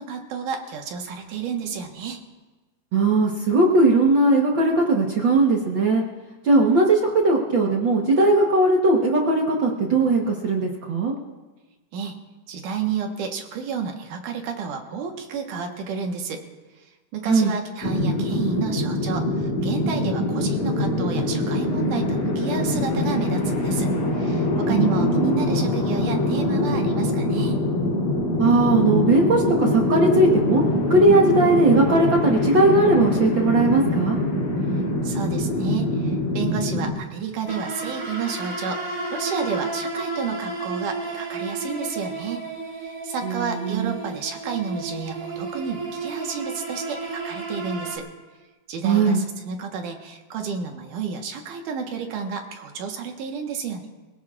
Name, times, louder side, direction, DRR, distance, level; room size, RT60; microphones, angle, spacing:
voice 1, 0.0-2.2 11.9-12.2 12.5-16.4 17.1-27.6 35.0-42.4 42.8-48.1 48.7-53.9, right 6 dB, 75° right, 3 dB, 2.8 m, -31 dB
voice 2, 2.9-6.0 6.4-11.1 17.3-17.5 24.7-25.5 28.4-30.6 30.9-34.2 43.2-43.9 48.8-49.2, right 2 dB, 60° right, -1 dB, 1.3 m, -19 dB
sound 1, 17.8-36.9, left 1 dB, 65° left, 3.9 m, -23 dB
sound 2, 37.5-48.0, right 3 dB, 30° right, 1.9 m, -32 dB
25.5 x 17.5 x 2.4 m, 1.2 s
omnidirectional pair, 3.8 m